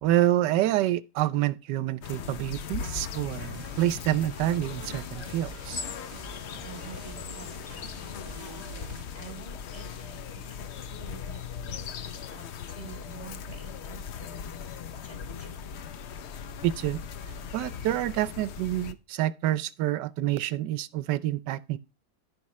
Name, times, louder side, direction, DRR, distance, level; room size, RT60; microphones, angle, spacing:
voice 1, 0.0-5.8 16.6-17.0 17.5-21.8, right 13 dB, 85° right, 1.2 m, -27 dB
sound 1, 2.0-18.9, left 7 dB, 65° left, 0.7 m, -39 dB
sound 2, 3.1-9.0, right 5 dB, 25° right, 0.6 m, -47 dB
voice 2, 6.6-14.4 14.7-15.7, right 3 dB, 20° left, 2.8 m, -49 dB
14.5 x 5.0 x 3.0 m
omnidirectional pair, 1.8 m